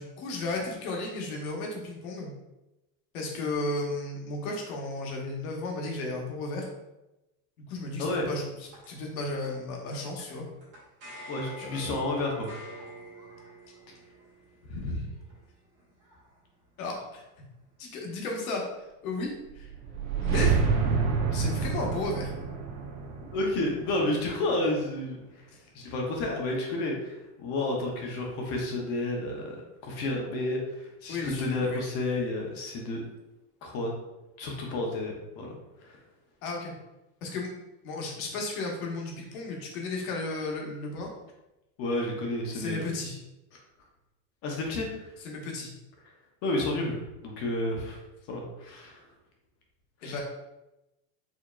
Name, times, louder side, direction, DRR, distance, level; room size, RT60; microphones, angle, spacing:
voice 1, 0.0-2.3 3.1-6.7 7.7-8.4 8.9-10.5 11.6-11.9 16.8-17.2 17.8-18.6 19.0-19.7 20.2-20.6 21.3-22.3 31.1-31.8 36.4-36.7 37.2-37.5 37.8-41.1 42.5-43.2 45.2-45.7 50.0-50.2, left 2 dB, 65° left, 0 dB, 1.1 m, -34 dB
sound 1, 7.8-17.9, equal, 25° right, 1.3 m, -50 dB
voice 2, 11.3-12.5 14.7-15.0 23.3-25.2 25.7-29.6 29.8-33.0 33.6-33.9 34.4-35.6 35.8-36.0 41.8-42.9 43.5-43.6 44.4-44.9 46.4-48.0 48.3-49.0 50.0-50.2, left 2 dB, 30° left, 0 dB, 0.6 m, -31 dB
sound 2, 19.5-24.7, right 5 dB, 60° right, 0.8 m, -28 dB
4.7 x 2.8 x 2.2 m, 0.97 s
supercardioid pair, 160°, 46 cm